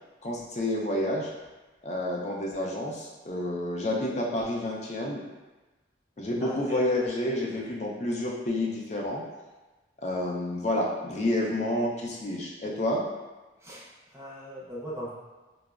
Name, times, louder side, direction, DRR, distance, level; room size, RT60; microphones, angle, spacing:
voice 1, 0.2-1.3 1.8-5.2 6.2-9.2 10.0-13.0, left 1 dB, 35° left, -2 dB, 0.5 m, -29 dB
voice 2, 6.4-6.8 7.5-7.6 13.6-15.1, equal, 15° right, -6 dB, 0.6 m, -39 dB
4.8 x 2.0 x 2.3 m, 1.2 s
head